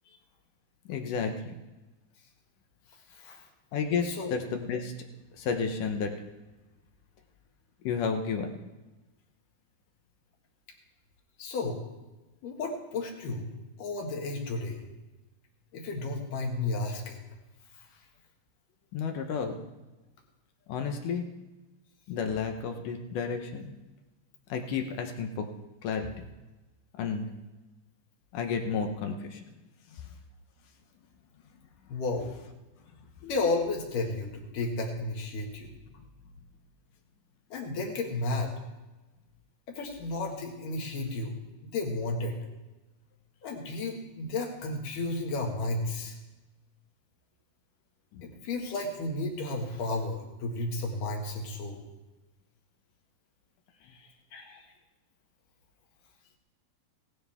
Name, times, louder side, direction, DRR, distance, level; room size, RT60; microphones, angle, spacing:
voice 1, 0.9-1.5 3.7-4.9 5.4-6.1 7.8-8.5 18.9-19.6 20.7-21.2 22.1-23.7 24.5-25.5 25.8-26.3 27.0-27.3 28.3-29.4 29.9-30.0 35.9-36.0 48.1-48.3 53.9-54.0, left 5 dB, 75° left, 5 dB, 2.0 m, -32 dB
voice 2, 3.1-3.5 4.0-4.4 11.4-11.8 12.4-13.5 13.8-14.8 15.7-17.2 17.7-17.9 31.9-32.3 33.2-35.7 37.5-38.5 39.7-41.3 41.6-42.4 43.4-46.2 48.2-51.8 54.3-54.6, left 2 dB, 60° left, 1 dB, 3.1 m, -33 dB
18.0 x 13.0 x 3.5 m, 1.1 s
omnidirectional pair, 4.8 m